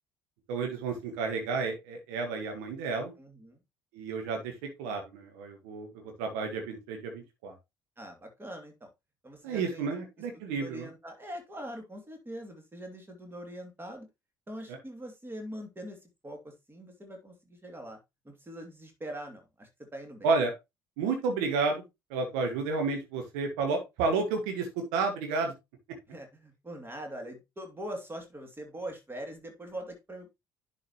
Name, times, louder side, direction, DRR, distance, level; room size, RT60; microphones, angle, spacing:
voice 1, 0.5-3.1 3.9-4.5 4.8-7.5 9.4-10.9 14.7-14.8 20.2-20.5 21.0-21.8 22.1-25.5, right 4 dB, 65° right, 4 dB, 1.5 m, -31 dB
voice 2, 3.2-3.6 8.0-8.9 9.2-9.9 10.5-14.1 14.5-18.0 18.2-20.3 26.1-30.3, right 1 dB, 20° right, 4 dB, 2.7 m, -43 dB
10.5 x 4.9 x 3.1 m, 0.22 s
figure-of-eight pair, 50°, 12 cm